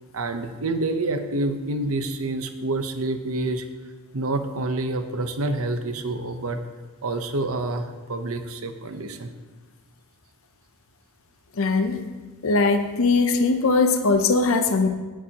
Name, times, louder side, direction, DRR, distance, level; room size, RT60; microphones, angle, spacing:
voice 1, 0.1-3.7 4.1-6.6 7.0-9.3, right 2 dB, 65° right, 8 dB, 0.8 m, -27 dB
voice 2, 11.6-12.1 12.4-14.9, left 3 dB, 65° left, 6 dB, 0.7 m, -20 dB
17.0 x 7.5 x 2.9 m, 1.3 s
head